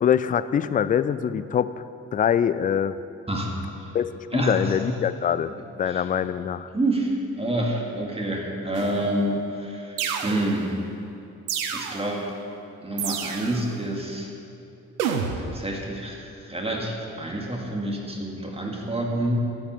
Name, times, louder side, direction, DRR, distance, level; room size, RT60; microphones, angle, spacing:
voice 1, 0.0-1.7 2.1-3.0 3.9-6.7, left 8 dB, 20° left, 14 dB, 0.3 m, -24 dB
voice 2, 3.3-3.9 4.3-4.9 5.9-6.0 6.7-7.1 7.4-10.8 11.7-12.2 12.8-14.3 15.4-19.4, right 1 dB, 15° right, -1 dB, 2.2 m, -28 dB
sound 1, 8.7-9.2 10.0-10.8 11.5-12.2 13.0-13.7 15.0-15.7, right 6 dB, 80° right, 0.7 m, -30 dB
12.5 x 5.9 x 7.0 m, 2.7 s
figure-of-eight pair, 40°, 43 cm